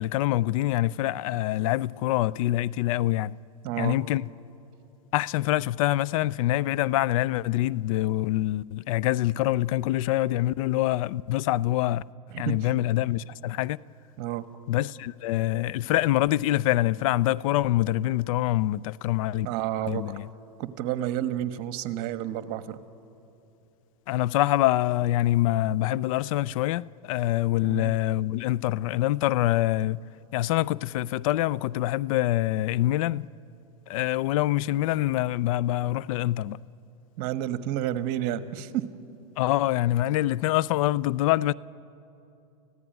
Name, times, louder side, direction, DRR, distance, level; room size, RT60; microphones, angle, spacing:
voice 1, 0.0-3.4 3.8-4.3 5.1-12.0 12.4-13.8 14.7-19.5 19.9-20.3 24.1-30.0 30.3-33.3 33.9-36.6 39.4-41.5, left 15 dB, 60° left, 0.5 m, -25 dB
voice 2, 3.6-4.0 12.3-12.5 14.2-14.4 19.4-20.2 20.6-22.8 27.6-27.9 37.2-38.8, right 12 dB, 50° right, 1.3 m, -30 dB
29.5 x 15.5 x 9.2 m
hypercardioid pair, 120°, 20 cm